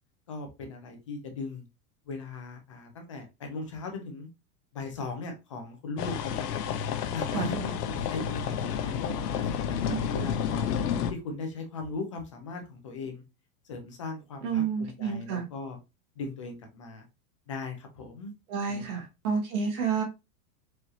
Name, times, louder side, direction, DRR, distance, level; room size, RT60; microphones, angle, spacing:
voice 1, 0.3-1.7 2.1-4.3 4.7-6.5 7.1-10.7 11.1-13.2 13.6-15.8 16.2-17.1 17.5-18.3 18.7-19.0, left 3 dB, 25° left, 0.3 m, -38 dB
sound 1, 6.0-11.1, left 8 dB, 80° left, 0.8 m, -30 dB
voice 2, 7.3-7.6 9.9-10.1 14.4-15.5 18.5-20.0, right 6 dB, 65° right, 1.8 m, -30 dB
4.6 x 3.1 x 2.7 m
supercardioid pair, 160°, 46 cm